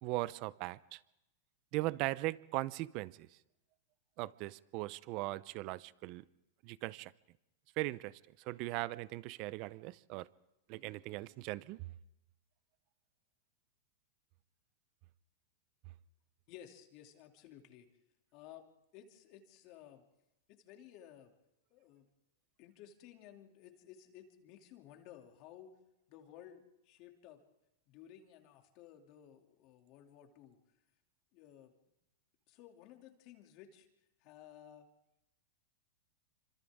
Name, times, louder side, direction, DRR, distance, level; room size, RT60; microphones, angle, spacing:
voice 1, 0.0-1.0 1.7-3.3 4.2-6.2 6.6-7.1 7.8-10.3 10.7-11.9, right 19 dB, 45° right, 19 dB, 0.6 m, -39 dB
voice 2, 16.5-17.9 18.3-18.7 18.9-20.0 20.5-21.3 21.7-22.1 22.6-25.7 26.1-27.4 27.9-30.6 31.3-31.7 32.5-33.9 34.2-34.9, left 10 dB, 45° left, 4 dB, 2.7 m, -56 dB
27.5 x 25.5 x 3.7 m, 0.88 s
supercardioid pair, 140°, 0 cm